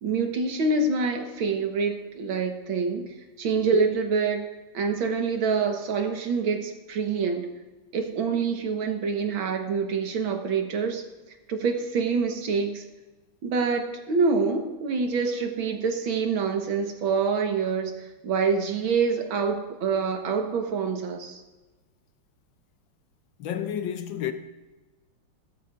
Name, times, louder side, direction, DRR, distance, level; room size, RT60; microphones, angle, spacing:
voice 1, 0.0-4.5 4.7-7.5 7.9-11.1 11.5-12.8 13.4-21.4, right 5 dB, 70° right, 2.0 m, -26 dB
voice 2, 23.4-24.3, left 9 dB, 70° left, 1.4 m, -30 dB
16.5 x 13.0 x 2.5 m
omnidirectional pair, 2.3 m